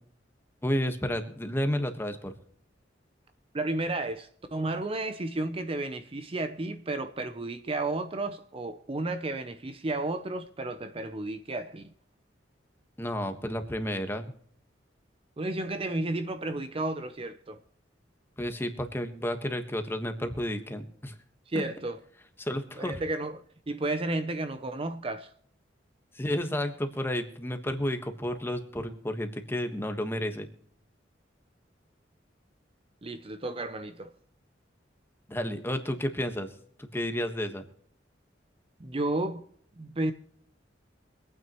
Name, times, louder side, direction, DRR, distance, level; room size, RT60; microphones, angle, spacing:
voice 1, 0.6-2.3 13.0-14.3 18.4-21.1 22.4-23.0 26.1-30.5 35.3-36.5 36.8-37.6, equal, 15° left, 1.3 m, -31 dB
voice 2, 3.5-11.8 15.4-17.6 21.5-22.0 22.8-25.3 33.0-34.1 38.8-39.4 39.8-40.1, right 2 dB, 30° right, 0.6 m, -32 dB
24.5 x 9.3 x 3.0 m
head